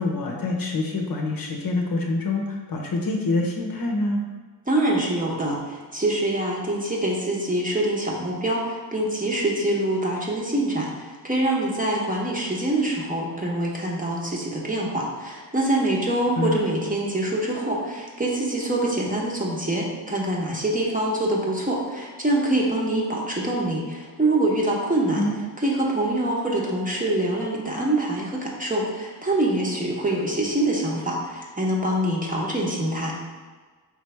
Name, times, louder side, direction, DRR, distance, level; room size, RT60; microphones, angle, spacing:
voice 1, 0.0-4.2 16.4-16.6 25.1-25.3, left 2 dB, 50° left, 1 dB, 0.7 m, -26 dB
voice 2, 4.7-25.2 25.6-33.1, right 1 dB, 20° right, -3 dB, 0.9 m, -25 dB
4.8 x 3.2 x 3.3 m, 1.4 s
cardioid pair, 85°, 45 cm